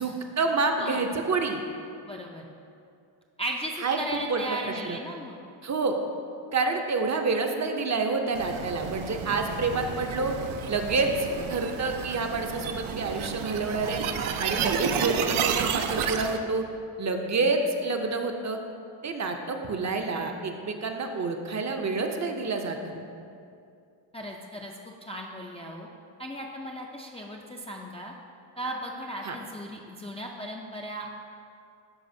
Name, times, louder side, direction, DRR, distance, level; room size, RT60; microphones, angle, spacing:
voice 1, 0.0-1.6 3.8-5.0 5.6-6.0 6.5-10.3 10.7-11.1 11.5-14.0 14.4-16.6 17.0-18.6 19.0-23.0 29.2-29.4, right 3 dB, 35° right, 4 dB, 0.5 m, -28 dB
voice 2, 2.1-2.4 3.4-5.4 24.1-25.9 26.2-28.1 28.6-31.1, right 1 dB, 15° left, -1 dB, 0.3 m, -36 dB
sound 1, 8.3-16.4, right 7 dB, 85° right, 0.6 m, -31 dB
12.0 x 4.7 x 2.6 m, 2.5 s
cardioid pair, 105°, 48 cm